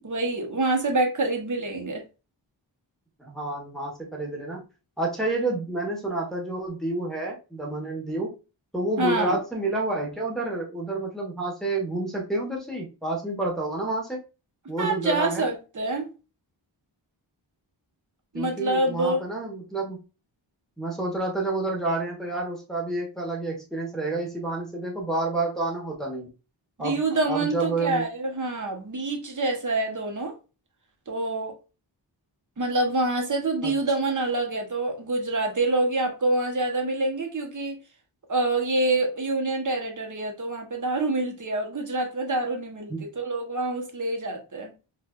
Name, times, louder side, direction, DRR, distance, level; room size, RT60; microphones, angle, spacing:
voice 1, 0.0-2.0 9.0-9.4 14.8-16.1 18.3-19.2 26.8-30.3 31.1-31.5 32.6-37.8 38.3-44.7, right 2 dB, 40° right, 1.0 m, -26 dB
voice 2, 3.2-4.6 5.0-8.3 8.7-14.2 14.7-15.5 18.3-20.0 20.8-26.3 26.8-28.0 33.6-33.8 42.9-43.1, right 2 dB, ahead, 1.2 m, -29 dB
4.7 x 2.5 x 2.3 m
wide cardioid pair, 95°, 46 cm